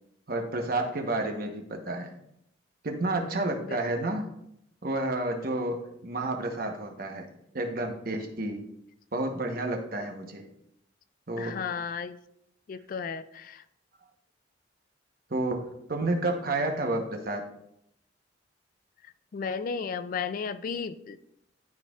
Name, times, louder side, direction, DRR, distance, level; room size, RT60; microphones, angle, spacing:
voice 1, 0.3-2.1 2.8-4.3 4.8-7.3 7.5-8.6 9.1-10.4 11.3-11.6 15.3-15.6 15.9-17.4, right 2 dB, 50° right, 4 dB, 1.0 m, -30 dB
voice 2, 11.4-12.2 12.7-13.6 19.3-21.2, left 6 dB, 45° left, 13 dB, 0.3 m, -34 dB
12.0 x 4.3 x 2.4 m, 0.76 s
head